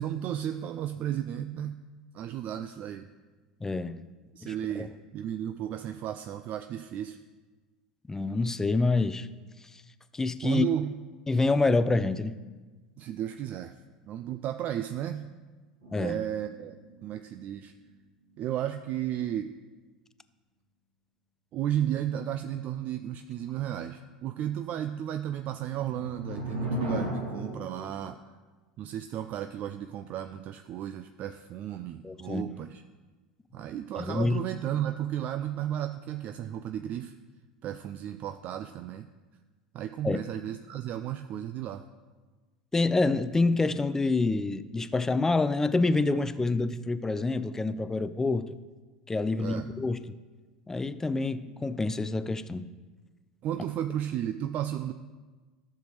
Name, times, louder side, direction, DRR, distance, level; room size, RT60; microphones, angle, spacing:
voice 1, 0.0-1.8 2.1-3.1 4.3-7.2 10.4-10.9 13.0-13.8 14.0-15.3 15.9-17.7 18.4-19.5 21.5-28.2 28.8-32.8 33.5-37.1 37.6-39.1 39.7-41.8 49.4-49.7 53.4-54.9, right 11 dB, 45° right, 8 dB, 0.4 m, -34 dB
voice 2, 3.6-4.0 4.4-4.9 8.1-9.3 10.1-10.6 11.3-12.4 15.9-16.2 32.0-32.4 34.0-34.4 40.0-40.2 42.7-48.6 49.1-50.2 50.7-52.7, left 3 dB, 10° left, 13 dB, 0.4 m, -27 dB
sound 1, 15.8-17.5 17.9-18.0 25.3-27.9, right 1 dB, 75° right, 2.5 m, -36 dB
13.0 x 6.7 x 3.1 m, 1.3 s
hypercardioid pair, 75°, 4 cm